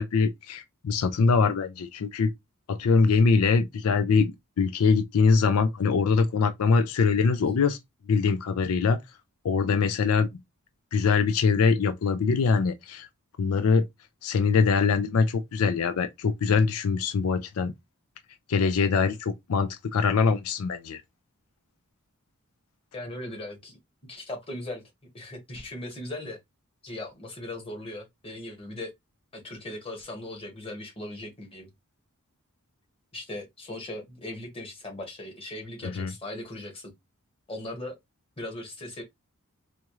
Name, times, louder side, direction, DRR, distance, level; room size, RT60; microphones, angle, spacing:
voice 1, 0.0-2.3 2.7-4.3 4.6-7.8 8.1-9.0 9.4-10.3 10.9-13.1 13.4-13.9 14.2-17.7 18.5-21.0 35.8-36.1, left 5 dB, 80° left, 0.4 m, -23 dB
voice 2, 22.9-23.8 24.1-26.4 26.8-28.9 29.3-31.7 33.1-36.9 37.5-37.9 38.4-39.0, left 1 dB, 25° left, 1.3 m, -38 dB
4.2 x 2.4 x 3.0 m
head